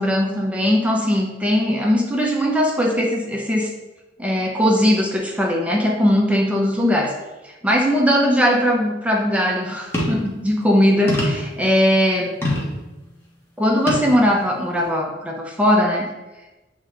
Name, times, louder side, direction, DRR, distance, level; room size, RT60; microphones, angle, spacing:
voice 1, 0.0-3.7 4.2-7.1 7.4-12.3 13.6-16.1, equal, 10° right, -1 dB, 0.6 m, -19 dB
sound 1, 9.9-10.3 11.1-11.5 12.4-12.7 13.9-14.1 14.8-14.9, left 1 dB, 15° left, 1.4 m, -23 dB
8.0 x 3.7 x 3.2 m, 1.1 s
head